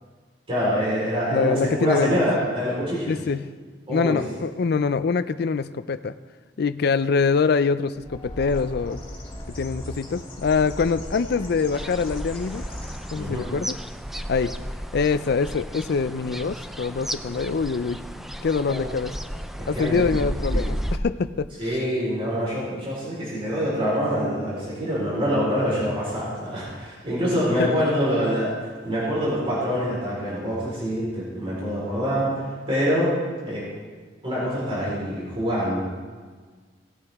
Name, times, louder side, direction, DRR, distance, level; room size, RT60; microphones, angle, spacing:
voice 1, 0.5-3.1 3.9-4.2 13.1-13.5 18.7-18.8 19.6-20.0 20.5-20.6 21.6-33.1 33.4-33.7 34.2-35.8, equal, 30° right, -7 dB, 4.1 m, -25 dB
voice 2, 1.3-2.2 3.1-3.5 3.9-6.1 6.6-9.0 9.6-12.6 13.1-13.8 14.3-14.5 14.9-18.0 18.4-19.1 19.7-21.5 27.6-27.7, left 5 dB, 60° left, 13 dB, 0.4 m, -24 dB
Bird, 7.9-13.5, equal, 30° left, 2.7 m, -37 dB
sound 1, 11.7-21.0, equal, ahead, 0.4 m, -33 dB
18.5 x 8.5 x 3.5 m, 1.5 s
head